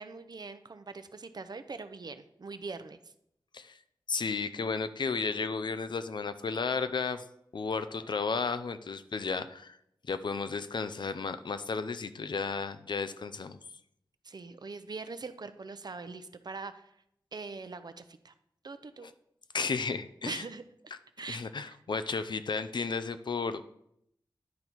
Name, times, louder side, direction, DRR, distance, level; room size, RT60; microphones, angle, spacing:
voice 1, 0.0-3.1 14.2-16.9 17.3-18.3 18.6-19.1 20.2-20.6 21.2-21.8, right 4 dB, 55° right, 10 dB, 0.6 m, -42 dB
voice 2, 4.1-7.2 7.5-9.8 10.1-13.6 19.5-20.4 21.3-23.6, left 4 dB, 65° left, 11 dB, 0.5 m, -33 dB
10.5 x 4.0 x 4.5 m, 0.74 s
wide cardioid pair, 60°, 8 cm